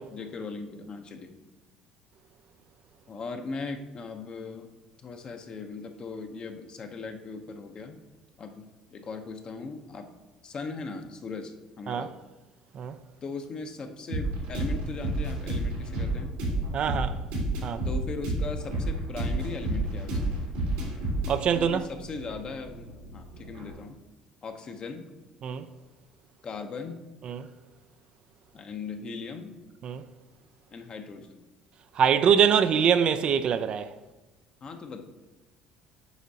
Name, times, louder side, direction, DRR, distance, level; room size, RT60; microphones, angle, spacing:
voice 1, 0.1-1.4 3.1-4.7 5.0-8.0 8.4-10.1 10.4-12.1 13.2-16.4 17.8-20.4 21.5-24.0 24.4-25.1 26.4-27.0 28.5-29.5 30.7-31.4 34.6-35.0, left 4 dB, 40° left, 0.8 m, -39 dB
sound 1, 14.1-23.7, right 1 dB, 85° right, 2.2 m, -31 dB
voice 2, 16.7-17.2 17.6-17.8 21.3-21.8 25.4-25.7 27.3-27.5 29.8-30.0 32.0-33.9, right 8 dB, 50° right, 0.4 m, -24 dB
8.1 x 5.0 x 2.8 m
supercardioid pair, 80°, 2 cm